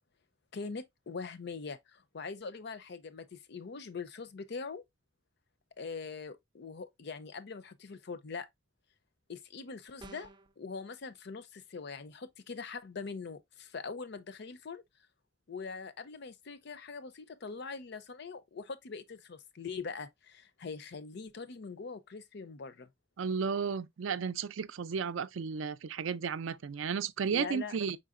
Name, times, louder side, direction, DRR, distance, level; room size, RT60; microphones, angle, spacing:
voice 1, 0.5-4.8 5.8-8.5 9.3-10.3 10.6-14.8 15.5-22.9 27.3-27.8, left 4 dB, 55° left, 0.5 m, -42 dB
sound 1, 10.0-10.5, right 2 dB, 20° right, 0.4 m, -50 dB
voice 2, 23.2-28.0, right 6 dB, 75° right, 0.4 m, -33 dB
5.5 x 3.8 x 2.4 m
head